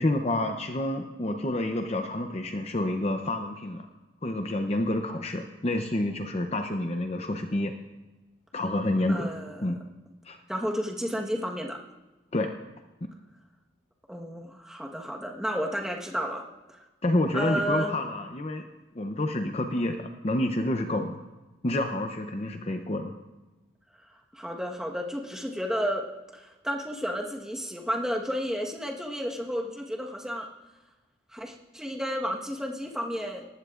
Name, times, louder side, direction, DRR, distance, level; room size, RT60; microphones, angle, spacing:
voice 1, 0.0-3.9 4.2-7.7 8.5-9.3 9.6-9.8 10.2-10.4 12.3-12.5 13.0-13.1 17.0-18.7 18.9-21.2 21.6-23.1, left 1 dB, 30° left, 5 dB, 0.6 m, -28 dB
voice 2, 9.1-9.8 10.5-11.8 14.1-16.4 16.7-16.8 17.3-17.9 24.3-26.1 26.3-30.5 31.3-33.5, equal, 5° right, 0 dB, 1.3 m, -32 dB
19.5 x 15.0 x 2.5 m, 1.1 s
head